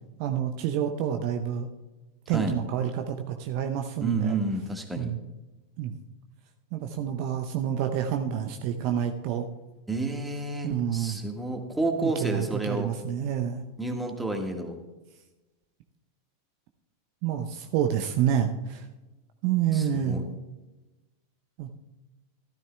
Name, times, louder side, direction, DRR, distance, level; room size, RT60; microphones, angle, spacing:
voice 1, 0.2-1.7 2.3-4.4 5.0-5.2 5.8-5.9 6.7-9.5 10.6-11.2 12.0-13.6 17.2-18.9 19.4-20.2 21.6-21.7, right 9 dB, 45° right, 6 dB, 0.7 m, -28 dB
voice 2, 4.0-5.1 9.9-12.9 13.8-14.7 19.7-20.2, right 2 dB, 5° right, 3 dB, 1.7 m, -30 dB
15.0 x 13.0 x 2.3 m, 1.1 s
figure-of-eight pair, 90°, 0 cm